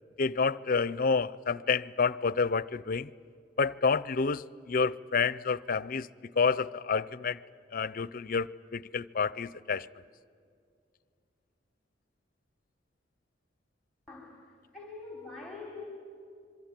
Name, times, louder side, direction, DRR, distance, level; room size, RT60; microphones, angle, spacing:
voice 1, 0.2-3.1 3.6-6.1 6.4-7.4 7.7-9.9, left 5 dB, 50° left, 0.5 m, -29 dB
voice 2, 14.1-14.4 14.7-15.9, left 3 dB, ahead, 3.6 m, -44 dB
26.0 x 23.5 x 9.0 m
head